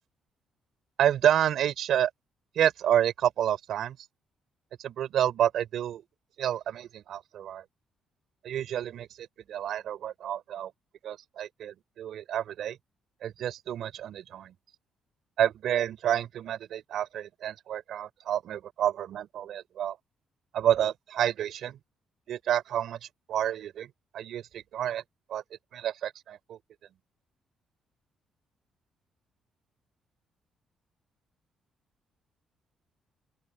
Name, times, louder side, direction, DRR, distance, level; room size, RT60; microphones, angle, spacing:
voice 1, 1.0-2.1 2.5-4.0 4.8-6.0 6.4-7.6 8.4-10.7 11.0-12.8 13.2-14.5 15.4-20.0 20.5-21.8 22.3-23.9 24.1-25.0 25.3-25.4 25.7-26.6, right 10 dB, 70° right, 4.5 m, -29 dB
open air
cardioid pair, 90°, 0 cm